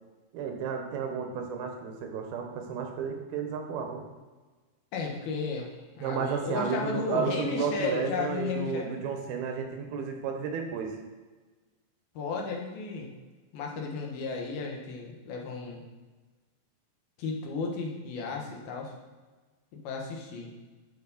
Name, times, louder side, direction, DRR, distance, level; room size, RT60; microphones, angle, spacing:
voice 1, 0.3-4.0 6.0-10.9, right 6 dB, 90° right, 4 dB, 3.1 m, -32 dB
voice 2, 4.9-9.0 12.1-13.1 13.5-15.8 17.2-18.9 19.7-20.5, left 4 dB, 85° left, 0 dB, 3.2 m, -34 dB
13.5 x 4.6 x 4.2 m, 1.3 s
omnidirectional pair, 4.3 m